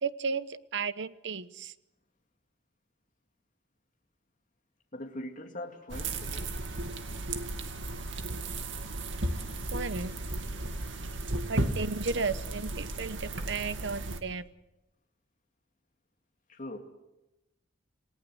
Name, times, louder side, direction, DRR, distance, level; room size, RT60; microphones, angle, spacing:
voice 1, 0.0-1.7 9.7-10.2 11.5-14.5, right 4 dB, 70° right, 14 dB, 0.9 m, -34 dB
voice 2, 4.9-6.4 16.5-16.8, left 1 dB, 45° left, 1 dB, 2.5 m, -41 dB
sound 1, 5.9-14.2, right 2 dB, 85° right, 2.2 m, -35 dB
28.5 x 18.5 x 7.9 m, 0.96 s
head